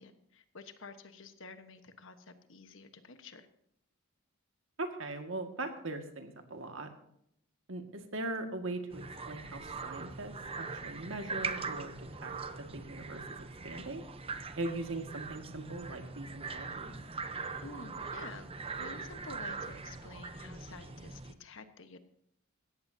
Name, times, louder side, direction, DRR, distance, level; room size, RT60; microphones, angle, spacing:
voice 1, 0.0-3.5 17.6-18.5 18.8-22.0, left 3 dB, 60° left, 9 dB, 1.3 m, -50 dB
voice 2, 4.8-6.9 7.7-12.3 12.7-14.0 14.6-17.0, right 2 dB, 65° right, 5 dB, 2.0 m, -40 dB
sound 1, 8.9-21.3, right 4 dB, 25° right, 0.8 m, -41 dB
17.5 x 14.5 x 2.8 m, 0.74 s
head